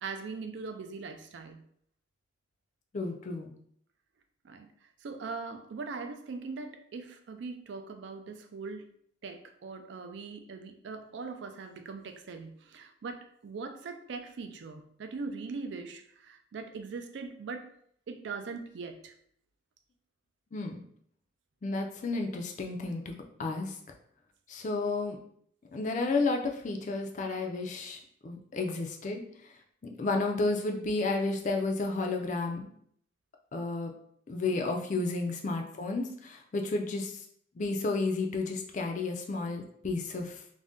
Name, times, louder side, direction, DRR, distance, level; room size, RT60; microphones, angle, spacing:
voice 1, 0.0-1.6 4.4-4.7 5.0-8.8 9.2-17.7 18.1-19.1, right 4 dB, 65° right, 7 dB, 0.3 m, -41 dB
voice 2, 2.9-3.5 20.5-20.8 21.6-23.1 23.4-23.8 24.5-25.2 25.7-32.7 33.5-33.9 34.3-37.2 37.5-40.4, left 3 dB, 40° left, 3 dB, 0.4 m, -32 dB
2.5 x 2.1 x 3.5 m, 0.65 s
head